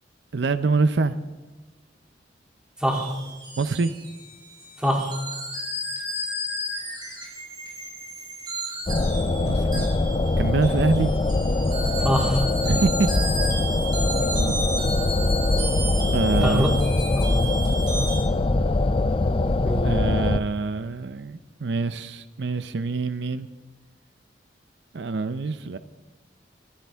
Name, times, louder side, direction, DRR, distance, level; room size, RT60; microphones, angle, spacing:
voice 1, 0.3-1.2 3.6-3.9 9.4-9.9 10.4-11.1 12.7-13.1 14.2-14.6 16.1-16.8 19.8-23.5 24.9-25.8, right 3 dB, 70° right, 12 dB, 0.6 m, -25 dB
voice 2, 2.8-3.1 4.8-5.1 12.0-12.4 16.3-17.4 19.6-20.1, equal, 5° right, -1 dB, 2.7 m, -25 dB
sound 1, 2.9-18.2, right 1 dB, 25° right, 5.7 m, -33 dB
sound 2, 8.9-20.4, left 2 dB, 30° left, 0.5 m, -23 dB
26.0 x 14.5 x 3.5 m, 1.2 s
head